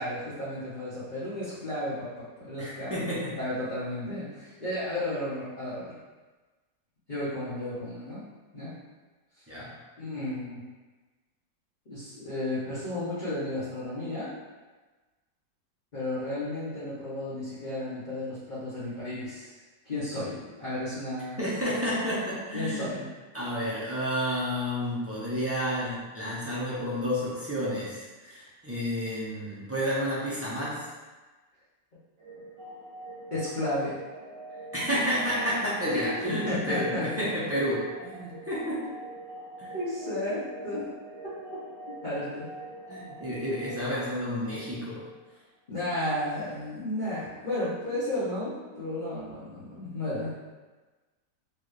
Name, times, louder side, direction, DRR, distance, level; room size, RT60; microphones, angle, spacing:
voice 1, 0.0-6.0 7.1-8.2 8.5-8.7 10.0-10.6 11.9-14.3 15.9-19.5 19.8-21.4 22.5-23.1 33.3-34.0 35.9-37.1 39.7-40.8 41.2-41.3 41.9-42.5 45.7-50.3, left 1 dB, 35° left, -12 dB, 0.9 m, -33 dB
voice 2, 2.6-3.4 9.5-9.7 21.4-23.0 23.3-30.8 34.7-39.0 39.6-39.7 42.9-45.0, equal, 15° right, -8 dB, 0.6 m, -30 dB
sound 1, 32.2-45.0, right 1 dB, 85° right, 1.4 m, -44 dB
4.6 x 2.5 x 3.2 m, 1.3 s
omnidirectional pair, 1.8 m